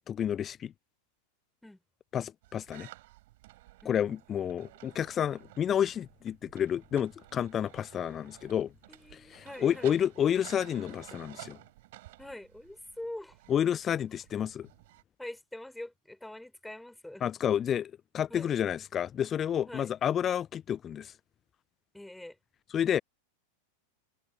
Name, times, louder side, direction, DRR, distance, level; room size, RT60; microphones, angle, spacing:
voice 1, 0.1-0.7 2.1-2.9 3.9-8.7 9.1-11.6 13.5-14.7 17.2-21.1 22.7-23.0, left 9 dB, 25° left, 0.8 m, -30 dB
sound 1, 2.4-15.0, right 18 dB, 50° right, 4.6 m, -54 dB
voice 2, 8.9-10.0 12.2-13.4 15.2-17.2 18.3-18.5 19.6-19.9 21.9-22.4, left 1 dB, 5° left, 4.9 m, -44 dB
figure-of-eight pair, 90°, 0 cm